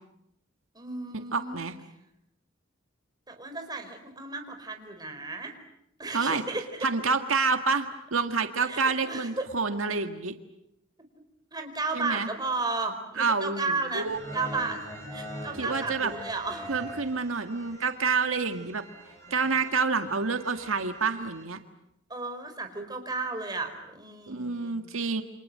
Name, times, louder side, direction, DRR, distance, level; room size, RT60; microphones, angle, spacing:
voice 1, 0.7-1.6 3.3-5.5 6.0-6.9 8.6-9.5 11.5-14.1 14.3-14.8 15.1-16.7 19.2-19.4 22.1-24.8, right 3 dB, 20° right, 5 dB, 4.5 m, -34 dB
voice 2, 1.3-1.8 6.1-6.4 6.8-10.3 11.9-12.3 13.2-14.2 15.6-16.1 16.7-18.8 19.3-21.6 24.3-25.2, right 4 dB, 90° right, 7 dB, 1.9 m, -28 dB
sound 1, 14.1-21.4, equal, 15° left, 7.9 m, -43 dB
29.5 x 26.5 x 7.6 m, 0.79 s
head